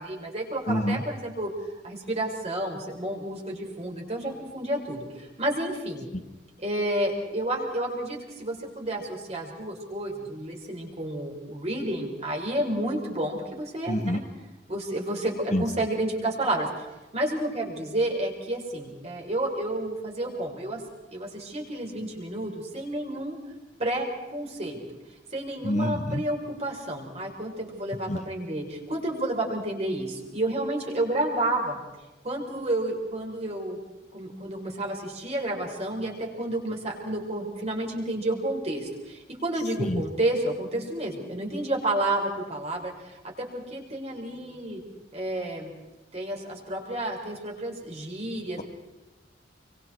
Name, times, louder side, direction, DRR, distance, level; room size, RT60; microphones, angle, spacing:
voice 1, 0.0-1.5 1.8-6.1 6.6-14.2 14.7-16.9 17.1-20.8 21.1-23.4 23.8-24.8 25.3-31.8 32.2-33.8 34.1-44.8 45.1-45.7 46.1-48.6, right 1 dB, 35° right, 0 dB, 5.6 m, -30 dB
voice 2, 0.7-1.0 6.1-6.2 13.9-14.2 15.5-15.6 25.6-26.2 28.1-28.2 39.8-40.0, equal, 40° left, 8 dB, 1.3 m, -26 dB
28.5 x 24.5 x 4.7 m, 1.1 s
head